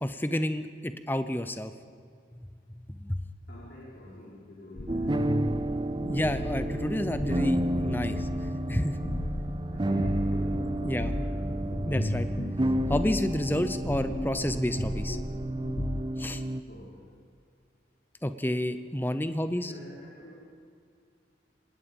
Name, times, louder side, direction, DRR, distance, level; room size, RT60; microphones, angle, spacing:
voice 1, 0.0-1.7 3.0-3.2 6.1-8.3 8.7-9.0 10.8-11.1 11.8-12.3 12.9-15.2 16.2-16.4 18.2-19.7, left 1 dB, 10° left, 10 dB, 0.8 m, -30 dB
voice 2, 3.5-5.4 9.7-11.7 16.6-17.0 19.5-20.4, left 1 dB, 65° left, -8 dB, 5.0 m, -48 dB
sound 1, 4.8-16.0, left 1 dB, 40° left, 0.9 m, -35 dB
sound 2, 4.9-16.6, right 1 dB, 25° right, 0.5 m, -31 dB
25.5 x 19.0 x 5.4 m, 2.2 s
head